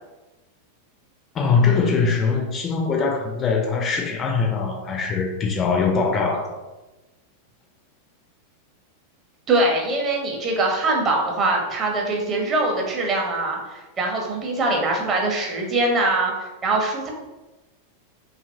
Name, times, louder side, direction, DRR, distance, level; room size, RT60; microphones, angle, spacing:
voice 1, 1.3-6.5, left 5 dB, 25° left, 1 dB, 0.3 m, -22 dB
voice 2, 9.5-17.1, right 2 dB, 25° right, 0 dB, 0.6 m, -23 dB
2.7 x 2.4 x 2.6 m, 1.1 s
figure-of-eight pair, 90°, 0 cm